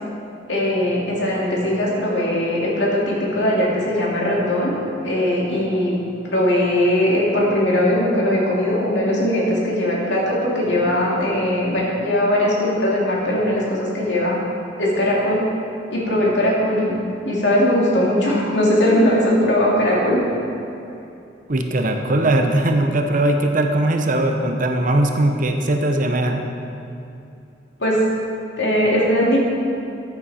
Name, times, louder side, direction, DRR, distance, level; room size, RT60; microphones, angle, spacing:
voice 1, 0.5-4.7 5.0-5.9 6.2-14.4 14.8-15.5 15.9-17.0 17.3-20.2 27.8-28.0 28.6-29.4, left 1 dB, 65° left, -4 dB, 2.7 m, -19 dB
voice 2, 21.5-26.4, right 1 dB, 45° right, 4 dB, 0.8 m, -19 dB
14.0 x 8.8 x 4.3 m, 2.7 s
head